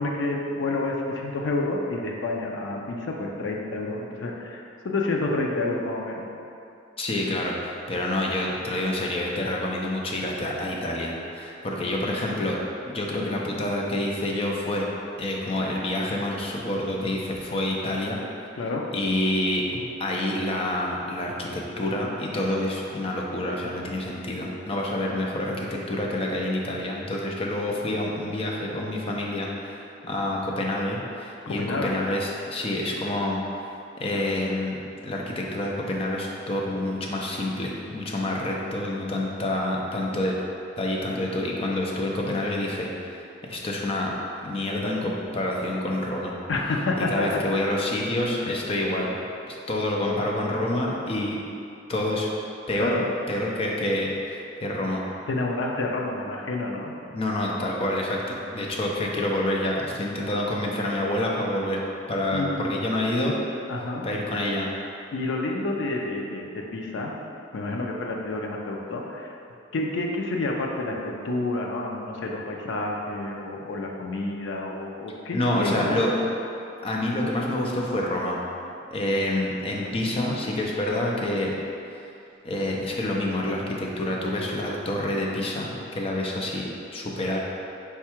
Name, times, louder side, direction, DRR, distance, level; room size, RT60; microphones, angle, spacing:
voice 1, 0.0-6.3 18.6-18.9 31.5-32.0 46.5-47.4 48.4-48.5 52.8-53.1 55.3-57.0 62.3-62.7 63.7-64.1 65.1-67.1 67.5-69.3 69.7-76.2, left 2 dB, 85° left, 0 dB, 0.4 m, -29 dB
voice 2, 7.0-12.6 12.9-14.9 15.2-18.2 18.9-19.6 20.0-33.6 34.0-40.3 40.8-43.2 43.5-44.1 44.4-46.3 47.0-49.1 49.5-51.4 51.9-52.3 52.7-52.9 53.3-55.0 57.1-61.8 62.1-63.4 64.0-64.7 75.3-76.1 76.8-78.4 78.9-81.5 82.4-86.6 86.9-87.4, left 1 dB, 30° left, -2 dB, 0.5 m, -27 dB
4.5 x 2.3 x 4.3 m, 2.7 s
head